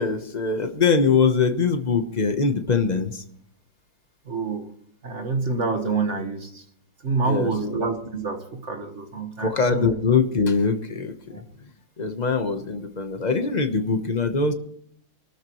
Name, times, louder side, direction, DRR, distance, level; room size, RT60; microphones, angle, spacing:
voice 1, 0.0-3.2 7.3-7.8 9.4-11.1 12.0-14.5, left 5 dB, 35° left, 7 dB, 0.7 m, -22 dB
voice 2, 4.3-4.7 5.0-6.6 7.0-9.9 11.3-11.4, right 4 dB, 35° right, 5 dB, 1.7 m, -27 dB
24.5 x 13.5 x 3.1 m, 0.67 s
omnidirectional pair, 2.3 m